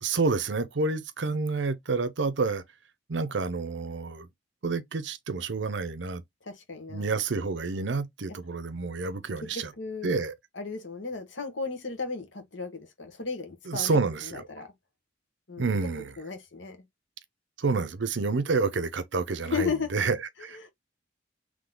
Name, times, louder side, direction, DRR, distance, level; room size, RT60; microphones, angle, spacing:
voice 1, 0.0-2.6 3.1-4.3 4.6-6.2 6.9-9.7 10.0-10.3 13.7-14.5 15.6-16.1 17.6-20.6, right 4 dB, 70° right, 0.7 m, -29 dB
voice 2, 6.4-7.1 9.5-10.1 10.5-14.0 14.3-14.7 15.5-15.8 16.2-16.8 19.4-19.9 20.4-20.7, left 4 dB, 80° left, 1.4 m, -35 dB
3.8 x 3.2 x 3.8 m
head